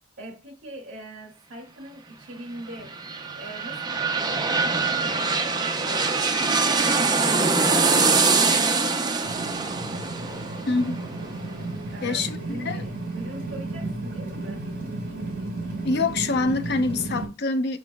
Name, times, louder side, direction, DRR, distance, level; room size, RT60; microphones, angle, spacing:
voice 1, 0.2-3.0 3.4-7.2 8.5-10.1 11.9-14.7, right 1 dB, 70° right, 2.4 m, -42 dB
sound 1, 2.7-12.3 12.7-12.8, right 4 dB, 20° right, 0.7 m, -24 dB
sound 2, 9.2-17.3, right 2 dB, 40° right, 3.2 m, -33 dB
voice 2, 10.7-11.0 12.0-12.8 15.8-17.8, left 3 dB, 50° left, 0.6 m, -25 dB
6.6 x 6.2 x 2.3 m
head